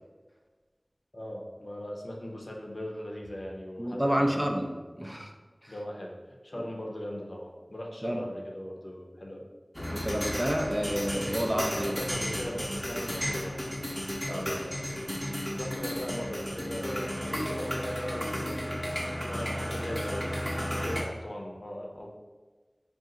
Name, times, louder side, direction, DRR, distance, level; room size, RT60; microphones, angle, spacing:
voice 1, 1.1-4.5 5.0-5.4 5.7-6.1 6.4-9.5 11.5-13.6 14.3-15.1 15.6-18.6 19.2-22.1, left 1 dB, 70° left, 0 dB, 0.6 m, -39 dB
voice 2, 3.8-4.7 5.0-5.3 5.6-5.7 8.0-8.2 9.9-12.0 14.3-14.6, equal, 25° right, 2 dB, 0.4 m, -29 dB
sound 1, 9.7-21.0, equal, 15° left, 0.7 m, -33 dB
3.9 x 2.4 x 3.7 m, 1.3 s
wide cardioid pair, 40°, 0 cm